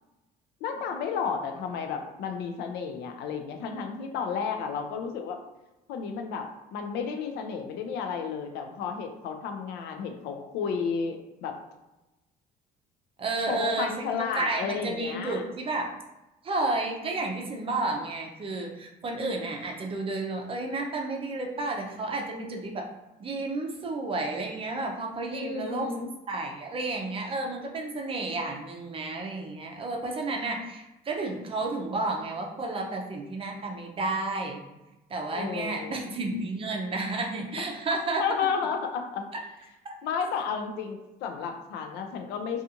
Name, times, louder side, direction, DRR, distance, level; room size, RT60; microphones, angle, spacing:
voice 1, 0.6-5.4 5.9-11.6 13.5-15.4 25.3-26.1 35.3-36.1 38.2-39.3 40.0-42.6, left 6 dB, 80° left, 5 dB, 0.4 m, -32 dB
voice 2, 13.2-14.1 14.3-15.9 16.4-22.8 23.2-25.9 26.3-34.6 35.1-38.2 39.8-39.9, right 2 dB, 35° right, 1 dB, 0.5 m, -31 dB
2.5 x 2.4 x 2.7 m, 0.99 s
cardioid pair, 110°, 17 cm